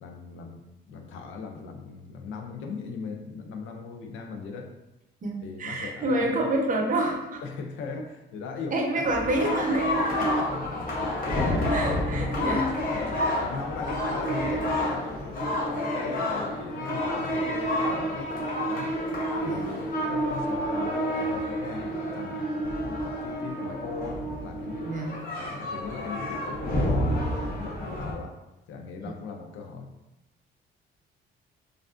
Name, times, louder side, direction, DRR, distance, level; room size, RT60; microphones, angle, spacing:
voice 1, 0.0-4.7 5.4-6.5 7.4-9.1 10.2-11.7 12.1-19.0 19.4-24.9 25.2-28.4 28.7-29.9, left 4 dB, 80° left, 3 dB, 0.5 m, -39 dB
voice 2, 5.2-7.4 8.7-10.2 11.7-12.7 19.4-19.7 24.9-25.2 29.0-29.2, right 1 dB, 40° right, 1 dB, 0.7 m, -28 dB
sound 1, 9.0-28.1, equal, 45° left, 0.9 m, -29 dB
3.2 x 2.4 x 2.4 m, 0.97 s
cardioid pair, 90°, 20 cm